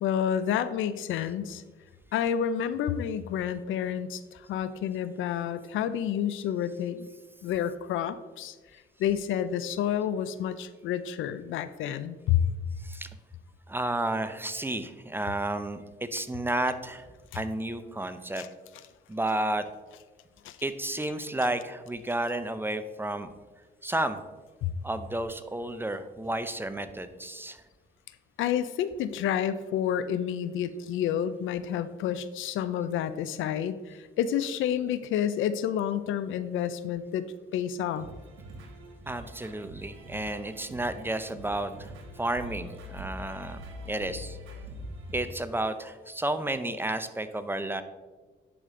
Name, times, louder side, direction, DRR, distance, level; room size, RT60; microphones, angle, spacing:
voice 1, 0.0-1.6 2.1-7.1 7.4-8.5 9.0-12.4 18.4-18.5 20.4-20.6 24.6-24.7 28.4-37.2 37.5-38.1, left 9 dB, 80° left, 14 dB, 0.5 m, -29 dB
voice 2, 12.8-13.1 13.7-17.1 17.3-18.4 19.1-19.7 20.6-23.3 23.8-24.3 24.8-27.6 39.1-44.4 45.1-47.8, right 1 dB, 10° right, 11 dB, 0.6 m, -32 dB
sound 1, 37.9-45.2, equal, 90° right, 1.7 m, -44 dB
11.0 x 5.0 x 3.7 m, 1.3 s
cardioid pair, 90°, 20 cm